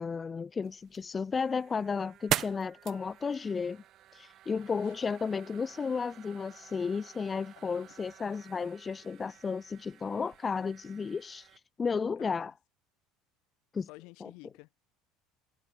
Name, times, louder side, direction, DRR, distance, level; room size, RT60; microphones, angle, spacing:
voice 1, 0.0-3.8 4.1-12.5 13.7-13.9 14.2-14.3, left 5 dB, 25° left, 0.4 m, -33 dB
sound 1, 0.6-11.6, right 12 dB, 50° right, 0.7 m, -42 dB
voice 2, 4.5-4.9 7.6-7.9 12.2-12.5 13.8-14.8, left 27 dB, 60° left, 1.0 m, -53 dB
figure-of-eight pair, 65°, 0 cm